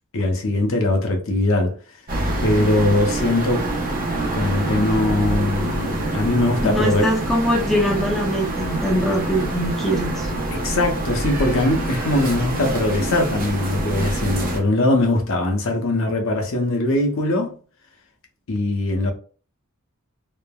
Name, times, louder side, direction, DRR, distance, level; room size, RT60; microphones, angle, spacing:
voice 1, 0.1-1.8 2.4-3.7 4.3-7.1 10.5-17.6 18.5-19.1, left 1 dB, 65° left, 0.7 m, -21 dB
sound 1, 2.1-14.6, right 1 dB, 40° right, 0.7 m, -26 dB
voice 2, 6.6-10.3, equal, ahead, 0.5 m, -22 dB
3.1 x 2.0 x 2.2 m
head